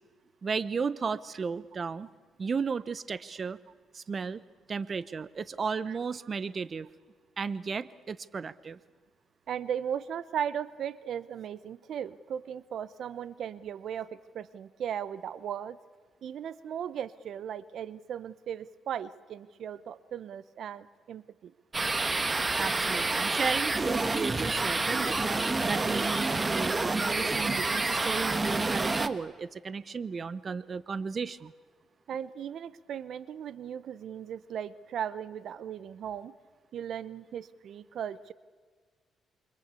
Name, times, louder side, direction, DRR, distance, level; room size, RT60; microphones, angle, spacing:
voice 1, 0.4-2.1 2.4-3.6 3.9-4.4 4.7-6.9 7.4-8.8 22.5-31.5, right 5 dB, 40° right, 17 dB, 0.9 m, -34 dB
voice 2, 9.5-15.8 16.2-21.5 24.1-24.2 32.1-36.3 36.7-38.3, right 9 dB, 65° right, 17 dB, 0.9 m, -37 dB
sound 1, 21.7-29.1, right 3 dB, 25° right, 1.5 m, -28 dB
28.0 x 25.0 x 8.4 m, 1.5 s
cardioid pair, 90°, 0 cm